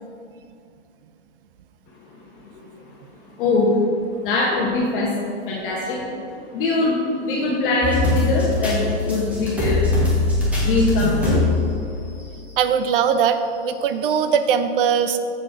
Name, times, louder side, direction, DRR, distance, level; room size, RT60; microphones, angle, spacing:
voice 1, 3.4-3.7 4.2-5.2 5.5-9.8 10.3-11.5, left 2 dB, 50° left, -4 dB, 1.2 m, -22 dB
sound 1, 7.8-12.5 13.0-13.1 14.0-14.1, left 2 dB, 5° right, 1.2 m, -22 dB
voice 2, 12.6-13.4 13.6-15.2, right 7 dB, 50° right, 10 dB, 0.5 m, -20 dB
7.0 x 4.6 x 5.0 m, 2.5 s
hypercardioid pair, 145°, 35 cm